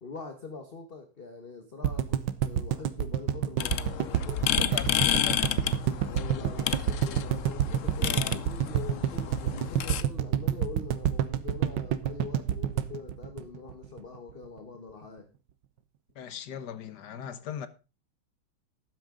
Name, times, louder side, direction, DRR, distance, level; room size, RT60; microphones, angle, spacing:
voice 1, 0.0-5.0 6.0-15.3, left 4 dB, 30° left, 1.3 m, -43 dB
sound 1, 1.8-14.0 14.3-14.4 14.6-14.7, right 10 dB, 65° right, 1.4 m, -28 dB
sound 2, 3.6-10.0, left 10 dB, 80° left, 0.7 m, -31 dB
voice 2, 4.6-5.6 16.2-17.7, left 9 dB, 60° left, 1.4 m, -39 dB
12.5 x 9.3 x 3.8 m
omnidirectional pair, 2.3 m